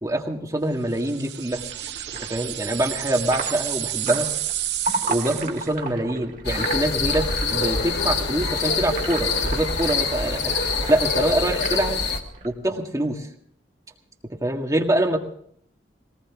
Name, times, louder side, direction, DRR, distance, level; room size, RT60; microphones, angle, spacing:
voice 1, 0.0-1.7 2.2-4.3 5.1-10.5 10.9-12.0 12.4-13.3 14.4-15.2, right 1 dB, 20° right, 1 dB, 1.9 m, -25 dB
sound 1, 0.9-5.7, right 13 dB, 65° right, 0.6 m, -30 dB
sound 2, 1.5-12.5, right 3 dB, 45° right, 1.8 m, -35 dB
sound 3, 6.4-12.2, left 4 dB, 75° left, 1.8 m, -25 dB
20.0 x 19.0 x 3.6 m, 0.65 s
head